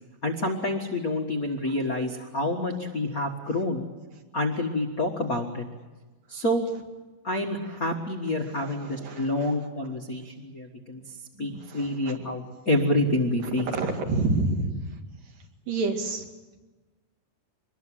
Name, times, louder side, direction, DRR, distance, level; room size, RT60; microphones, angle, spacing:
voice 1, 0.2-3.8 4.3-5.6 6.3-6.6 7.2-13.7, left 1 dB, 50° left, 2 dB, 1.0 m, -28 dB
voice 2, 8.6-9.6 9.8-9.9 11.6-12.2 13.4-14.8 15.7-16.2, right 3 dB, 70° right, 3 dB, 3.9 m, -29 dB
24.0 x 21.0 x 7.7 m, 1.2 s
omnidirectional pair, 4.2 m